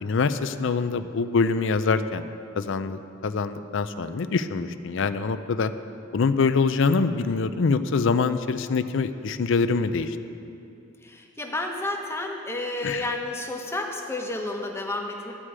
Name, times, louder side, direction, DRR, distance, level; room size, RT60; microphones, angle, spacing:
voice 1, 0.0-2.3 2.6-5.7 6.1-10.2 12.8-13.1, left 4 dB, 65° left, 11 dB, 0.5 m, -24 dB
voice 2, 11.0-15.3, left 2 dB, 15° left, 2 dB, 0.9 m, -31 dB
13.0 x 4.9 x 8.7 m, 2.6 s
head